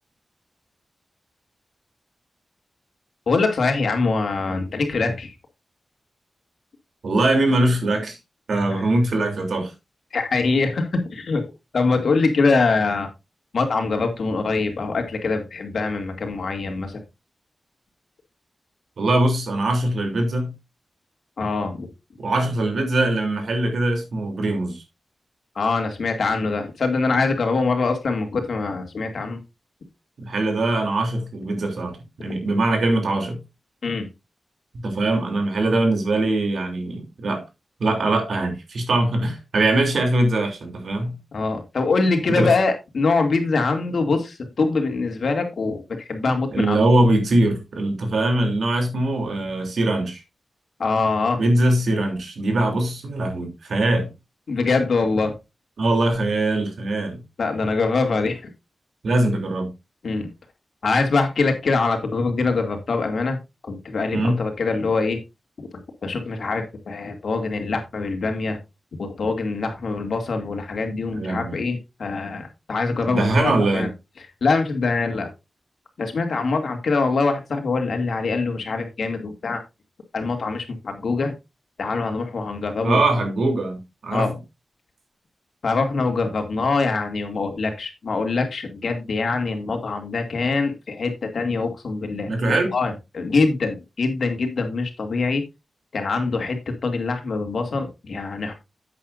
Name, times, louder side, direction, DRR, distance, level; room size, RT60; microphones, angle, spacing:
voice 1, 3.3-5.3 8.7-8.8 10.1-11.4 11.7-13.1 13.5-17.0 21.4-21.9 25.6-29.4 33.8-34.1 41.3-46.8 50.8-51.4 54.5-55.3 57.4-58.4 60.0-60.3 60.8-63.4 63.6-65.2 65.6-65.7 66.0-68.6 68.9-73.9 74.4-75.3 76.0-79.6 80.1-81.3 81.8-83.0 84.1-84.3 85.6-95.4 95.9-98.5, left 3 dB, 70° left, 2.5 m, -23 dB
voice 2, 7.0-8.2 8.5-9.7 19.0-20.5 22.2-24.8 30.2-33.4 34.8-37.4 37.8-41.2 42.3-42.5 46.5-50.2 51.4-54.1 55.8-57.2 59.0-59.7 64.1-64.4 71.1-71.5 73.0-73.9 82.8-84.3 92.3-92.7, right 2 dB, 80° right, 3.3 m, -22 dB
11.5 x 8.4 x 2.6 m
wide cardioid pair, 130°, 0 cm